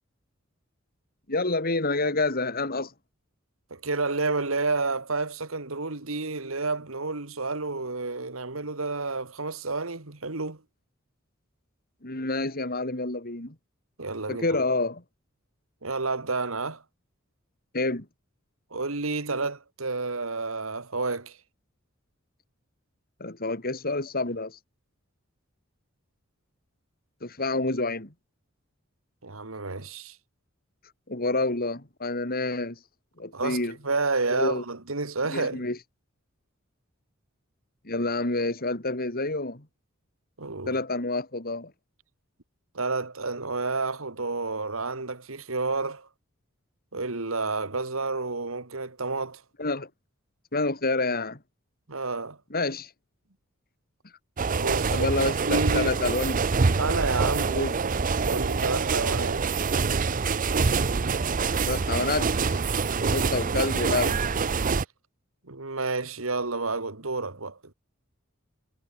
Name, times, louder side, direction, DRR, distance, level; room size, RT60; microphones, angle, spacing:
voice 1, 1.3-2.9 12.0-13.5 14.3-15.0 17.7-18.1 23.2-24.6 27.2-28.1 31.1-32.8 33.2-33.8 34.3-34.6 35.3-35.8 37.8-39.7 40.7-41.7 49.6-49.9 50.5-51.4 52.5-52.9 54.9-56.4 57.5-57.8 61.7-62.6 63.1-64.2, left 2 dB, 50° left, 4.3 m, -28 dB
voice 2, 3.7-10.6 14.0-14.5 15.8-16.8 18.7-21.4 29.2-30.2 33.3-35.6 40.4-40.8 42.7-46.1 46.9-49.4 51.9-52.4 54.6-56.0 56.8-58.0 58.3-59.5 65.5-67.6, right 3 dB, 90° right, 2.3 m, -30 dB
sound 1, 54.4-64.8, right 4 dB, 40° right, 0.6 m, -25 dB
head